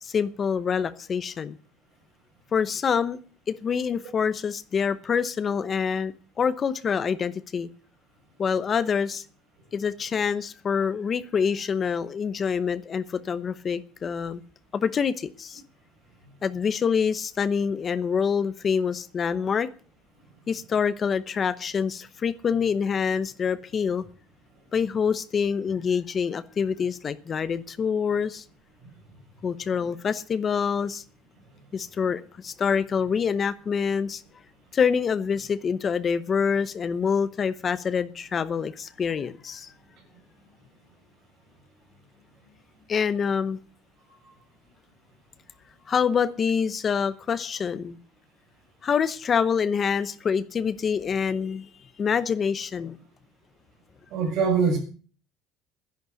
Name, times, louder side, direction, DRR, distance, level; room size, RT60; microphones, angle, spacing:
voice 1, 0.0-1.6 2.5-3.2 3.5-7.7 8.4-9.2 9.7-14.4 14.7-15.6 16.4-19.7 20.5-24.1 24.7-28.4 29.4-31.0 31.7-34.2 34.7-39.7 42.9-43.6 45.9-48.0 48.8-53.0, left 6 dB, 25° left, 0.8 m, -26 dB
voice 2, 54.1-54.8, right 5 dB, 45° right, 6.6 m, -22 dB
11.0 x 10.5 x 8.2 m
cardioid pair, 180°, 0 cm